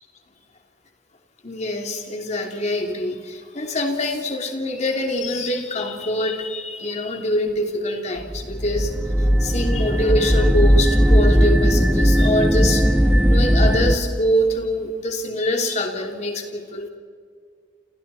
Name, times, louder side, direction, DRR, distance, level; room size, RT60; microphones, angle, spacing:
voice 1, 1.4-8.9 9.2-12.9 13.3-16.9, left 1 dB, 40° left, 3 dB, 2.9 m, -24 dB
sound 1, 8.2-14.0, equal, 5° right, 1.3 m, -17 dB
29.5 x 28.5 x 4.3 m, 2.1 s
head